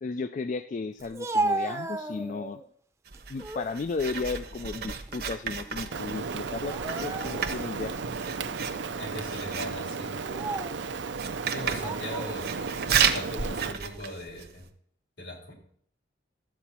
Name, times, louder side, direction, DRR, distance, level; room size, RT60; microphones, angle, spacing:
voice 1, 0.0-2.6 3.3-8.0, left 4 dB, 40° left, 11 dB, 0.3 m, -34 dB
Speech, 1.0-2.6 3.1-3.7 4.2-5.4 5.6-5.8 6.6-7.6 8.2-8.3 9.1-9.4 10.1-10.8 11.7-12.4, right 2 dB, 15° right, 0.6 m, -34 dB
Writing, 3.1-14.7, right 7 dB, 55° right, 0.9 m, -33 dB
Rain, 5.9-13.7, right 4 dB, 75° right, 0.5 m, -34 dB
voice 2, 9.0-10.1 11.5-14.7 15.2-15.5, left 1 dB, 80° left, -1 dB, 3.6 m, -40 dB
13.0 x 8.0 x 4.3 m, 0.62 s
head